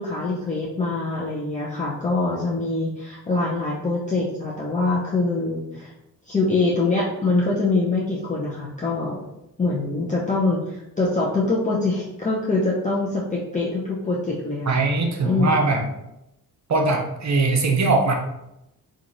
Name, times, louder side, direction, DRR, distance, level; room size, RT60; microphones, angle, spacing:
voice 1, 0.0-5.9 6.3-9.3 9.6-14.8 15.2-15.6, left 3 dB, 20° left, -5 dB, 0.7 m, -24 dB
voice 2, 14.7-15.8 16.7-18.1, right 3 dB, 45° right, 2 dB, 0.8 m, -21 dB
3.1 x 2.5 x 3.9 m, 0.87 s
cardioid pair, 70°, 39 cm